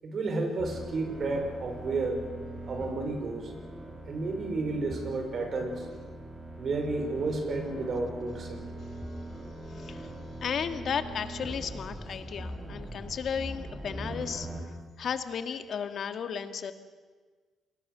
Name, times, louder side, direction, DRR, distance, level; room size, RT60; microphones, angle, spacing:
voice 1, 0.0-2.2 2.7-3.5 4.1-5.9 6.6-8.7, right 3 dB, 50° right, 4 dB, 5.3 m, -31 dB
sound 1, 0.6-14.6, right 1 dB, 10° right, 5.1 m, -41 dB
voice 2, 9.7-10.1 10.4-14.5 15.0-16.7, left 7 dB, 60° left, 9 dB, 1.8 m, -34 dB
28.5 x 21.0 x 6.8 m, 1.4 s
cardioid pair, 90°, 0 cm